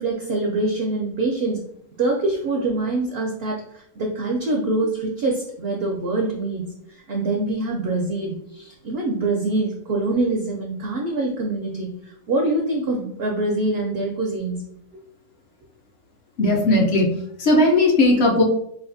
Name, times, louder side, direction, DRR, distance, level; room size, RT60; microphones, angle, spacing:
voice 1, 0.0-1.6 2.0-14.6, right 2 dB, 70° right, 0 dB, 0.6 m, -25 dB
voice 2, 16.4-18.4, left 1 dB, 60° left, -1 dB, 0.7 m, -17 dB
4.2 x 2.3 x 2.5 m, 0.72 s
omnidirectional pair, 1.6 m